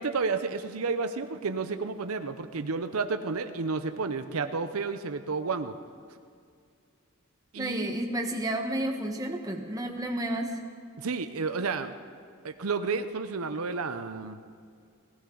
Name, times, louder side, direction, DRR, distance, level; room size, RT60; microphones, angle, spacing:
voice 1, 0.0-5.8 7.5-7.9 11.0-11.9 12.4-14.4, right 4 dB, 80° right, 9 dB, 0.7 m, -31 dB
voice 2, 7.6-10.5, right 1 dB, 15° right, 2 dB, 1.3 m, -31 dB
19.5 x 16.0 x 3.9 m, 2.3 s
head